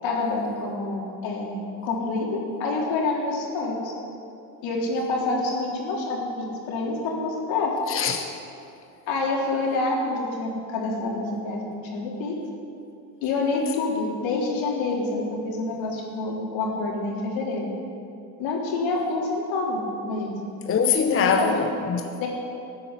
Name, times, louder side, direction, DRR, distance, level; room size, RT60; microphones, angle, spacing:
voice 1, 0.0-3.9 4.6-7.8 9.1-12.4 13.2-17.7 18.4-20.4 21.1-21.6 22.2-22.3, left 3 dB, 70° left, -2 dB, 3.8 m, -27 dB
voice 2, 7.9-8.3 20.7-22.0, left 6 dB, 25° left, 5 dB, 0.9 m, -23 dB
14.5 x 8.9 x 8.3 m, 2.6 s
supercardioid pair, 95°, 48 cm